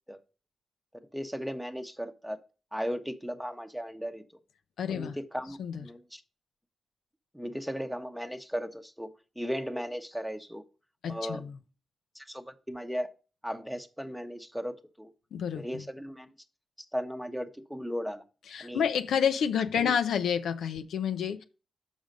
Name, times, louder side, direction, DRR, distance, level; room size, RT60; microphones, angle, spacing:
voice 1, 1.1-2.4 2.7-4.2 4.9-6.2 7.3-10.6 11.1-11.4 12.1-13.1 13.4-15.1 15.6-16.3 16.9-18.2 18.6-18.9 19.8-19.9, equal, ahead, 0.9 m, -36 dB
voice 2, 4.8-5.2 5.6-5.9 11.0-11.6 15.3-15.8 18.5-21.4, left 8 dB, 85° left, 0.6 m, -29 dB
6.3 x 5.0 x 5.2 m
cardioid pair, 70°, 0 cm